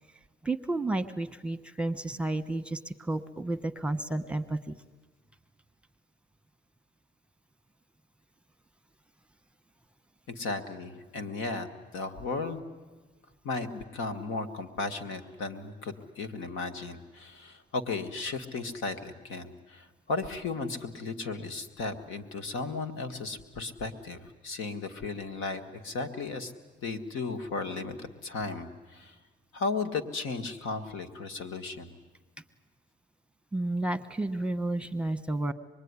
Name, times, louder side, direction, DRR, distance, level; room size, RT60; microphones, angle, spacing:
voice 1, 0.4-4.8 33.5-35.5, right 2 dB, 5° right, 10 dB, 1.1 m, -31 dB
voice 2, 10.3-12.6 13.4-26.5 26.8-29.2 29.5-32.0, left 3 dB, 90° left, 8 dB, 1.8 m, -35 dB
25.5 x 21.0 x 9.7 m, 1.3 s
cardioid pair, 90°, 20 cm